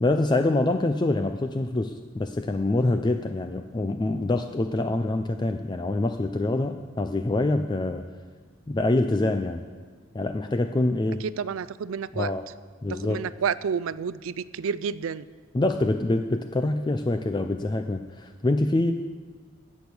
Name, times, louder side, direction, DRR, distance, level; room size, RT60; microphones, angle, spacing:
voice 1, 0.0-8.0 8.7-9.6 10.1-11.2 12.2-12.5 12.8-13.3 15.5-18.9, left 2 dB, 20° left, 7 dB, 0.4 m, -25 dB
voice 2, 11.2-12.3 12.9-15.2, right 6 dB, 90° right, 17 dB, 0.4 m, -30 dB
16.5 x 6.2 x 7.0 m, 1.5 s
head